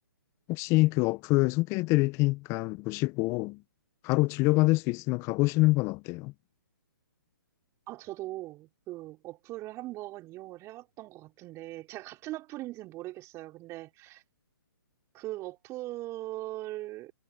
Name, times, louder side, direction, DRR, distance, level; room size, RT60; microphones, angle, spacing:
voice 1, 0.5-3.6 4.0-6.3, left 22 dB, 25° left, 0.9 m, -25 dB
voice 2, 7.9-14.2 15.1-17.1, right 17 dB, 25° right, 4.2 m, -40 dB
hypercardioid pair, 135°, 12 cm